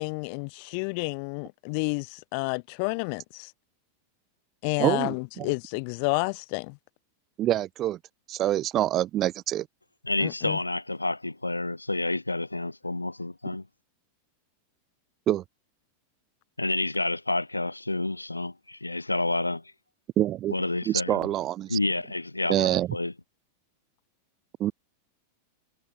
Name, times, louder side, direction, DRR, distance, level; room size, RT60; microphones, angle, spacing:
voice 1, 0.0-3.5 4.6-6.8 10.2-10.6, left 37 dB, 45° left, 3.7 m, -30 dB
voice 2, 4.8-5.5 7.4-8.0 8.3-9.7 15.3-15.4 20.2-20.6 20.9-21.8 22.5-22.9 24.6-24.7, right 13 dB, 30° right, 1.2 m, -26 dB
voice 3, 10.0-13.6 16.6-19.6 20.5-21.3 21.7-23.1, left 2 dB, 85° left, 1.5 m, -29 dB
figure-of-eight pair, 90°, 0 cm